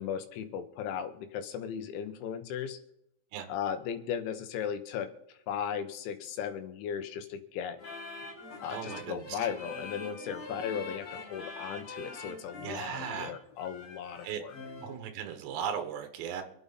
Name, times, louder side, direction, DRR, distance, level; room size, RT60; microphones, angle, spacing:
voice 1, 0.0-2.8 3.5-5.1 5.5-7.8 8.6-14.5, left 8 dB, 80° left, 8 dB, 3.5 m, -36 dB
sound 1, 7.8-15.0, left 3 dB, 40° left, 3.5 m, -43 dB
voice 2, 8.7-9.3 12.6-13.4 14.2-14.4 14.8-16.4, right 8 dB, 70° right, 7 dB, 3.4 m, -37 dB
26.0 x 8.8 x 4.1 m, 0.79 s
omnidirectional pair, 5.3 m